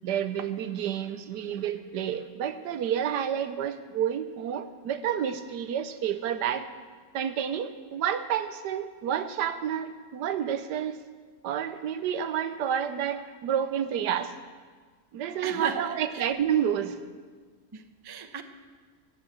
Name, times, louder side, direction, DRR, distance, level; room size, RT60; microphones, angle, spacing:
voice 1, 0.0-6.7 7.1-11.0 11.4-14.4 15.1-17.0, right 9 dB, 80° right, 11 dB, 1.4 m, -29 dB
voice 2, 15.4-16.3 17.7-18.4, right 6 dB, 30° right, 8 dB, 0.4 m, -37 dB
17.5 x 7.8 x 7.7 m, 1.5 s
omnidirectional pair, 1.8 m